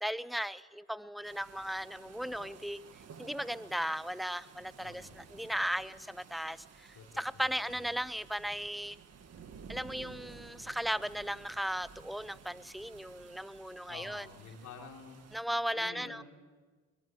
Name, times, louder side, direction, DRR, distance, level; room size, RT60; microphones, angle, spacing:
voice 1, 0.0-2.8 3.2-9.0 9.7-14.3 15.3-16.2, equal, ahead, 17 dB, 0.6 m, -36 dB
sound 1, 1.2-15.4, right 6 dB, 55° right, 2.0 m, -54 dB
voice 2, 4.8-5.4 6.9-7.9 13.8-15.2 15.7-16.2, left 5 dB, 80° left, 2 dB, 3.2 m, -50 dB
21.5 x 20.5 x 7.6 m, 1.4 s
cardioid pair, 90°, 30 cm